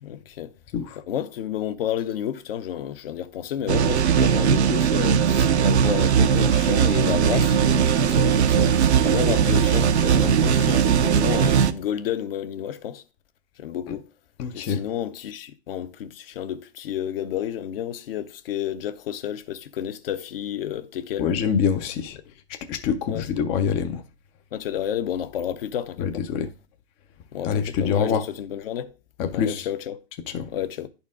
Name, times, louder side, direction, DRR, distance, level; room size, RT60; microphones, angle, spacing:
voice 1, 0.0-0.5 1.1-13.0 13.6-14.1 14.5-21.3 23.1-23.3 24.5-26.2 27.3-28.9 29.3-30.0 30.5-30.9, left 10 dB, 60° left, 0.8 m, -31 dB
sound 1, 3.7-11.7, right 7 dB, 80° right, 0.6 m, -19 dB
voice 2, 14.4-14.8 21.2-22.2 22.5-24.0 26.0-26.5 27.4-28.2 29.2-29.7 30.3-30.5, left 7 dB, 20° left, 0.4 m, -25 dB
10.5 x 4.3 x 3.5 m
hypercardioid pair, 120°, 33 cm